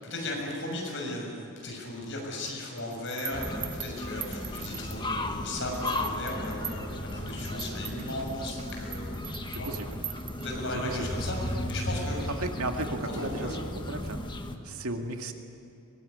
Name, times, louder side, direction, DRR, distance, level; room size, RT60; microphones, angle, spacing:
voice 1, 0.0-9.1 9.5-9.7 10.4-12.2 13.0-13.5, left 1 dB, 55° left, 0 dB, 6.9 m, -36 dB
sound 1, 2.5-5.3 5.7-10.9, right 9 dB, 25° right, 0.7 m, -42 dB
sound 2, 3.3-14.6, left 1 dB, 20° left, 1.3 m, -35 dB
voice 2, 10.7-11.1 12.4-14.2 14.6-15.3, right 2 dB, 75° right, 4 dB, 2.1 m, -34 dB
23.0 x 20.5 x 9.6 m, 2.8 s
head